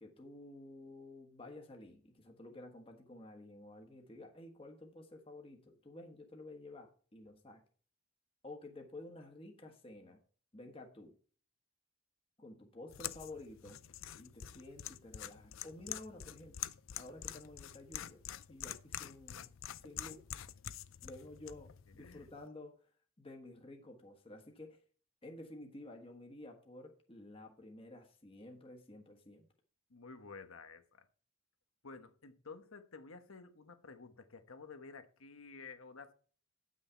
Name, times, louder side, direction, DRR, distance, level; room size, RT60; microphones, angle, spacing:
voice 1, 0.0-7.6 8.4-10.2 10.5-11.1 12.4-13.8 14.1-16.6 17.0-18.2 18.5-19.5 19.8-20.2 21.0-22.7 23.2-24.8 25.2-29.5, left 2 dB, 25° left, 1.3 m, -52 dB
sound 1, 12.9-22.5, left 11 dB, 70° left, 0.5 m, -47 dB
voice 2, 22.0-22.3 29.9-31.1 31.8-36.1, left 4 dB, 90° left, 1.2 m, -52 dB
9.3 x 6.4 x 4.5 m
head